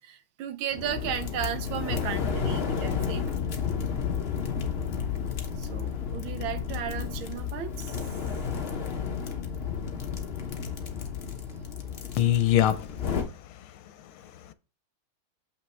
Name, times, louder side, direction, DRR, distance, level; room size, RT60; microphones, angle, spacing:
voice 1, 0.0-3.2 5.6-8.0, right 9 dB, 75° right, 1.5 m, -35 dB
sound 1, 0.7-13.2, left 6 dB, 45° left, 0.7 m, -32 dB
sound 2, 3.9-10.3, left 7 dB, 10° left, 1.6 m, -42 dB
voice 2, 12.2-13.7 14.0-14.1 14.5-14.6, left 12 dB, 80° left, 1.5 m, -25 dB
6.9 x 5.9 x 3.3 m
omnidirectional pair, 2.3 m